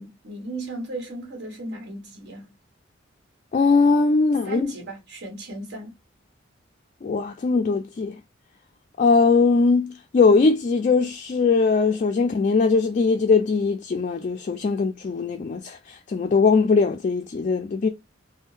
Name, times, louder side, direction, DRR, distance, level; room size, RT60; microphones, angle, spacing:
voice 1, 0.0-2.5 4.4-5.9, right 2 dB, 60° right, 1.4 m, -35 dB
voice 2, 3.5-4.7 7.0-8.1 9.0-17.9, left 4 dB, 40° left, 0.3 m, -20 dB
3.5 x 2.1 x 2.5 m
head